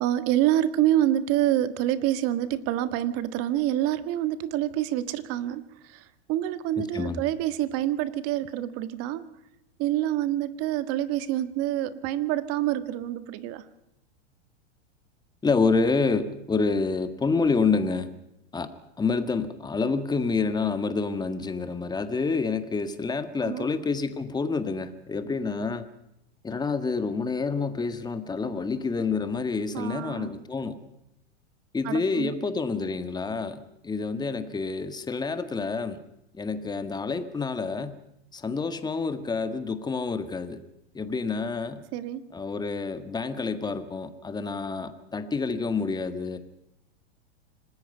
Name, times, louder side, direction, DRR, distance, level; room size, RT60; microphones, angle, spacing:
voice 1, 0.0-9.2 9.8-13.6 23.4-23.7 29.7-30.3 31.8-32.3 41.9-42.2, right 13 dB, 45° right, 12 dB, 1.7 m, -27 dB
voice 2, 6.8-7.2 15.4-18.1 18.5-18.7 19.0-25.8 26.4-30.8 31.7-36.0 36.3-38.0 38.3-40.6 40.9-41.8 42.3-46.4, left 4 dB, 10° left, 10 dB, 1.7 m, -28 dB
26.5 x 20.0 x 5.6 m, 0.84 s
hypercardioid pair, 120°, 34 cm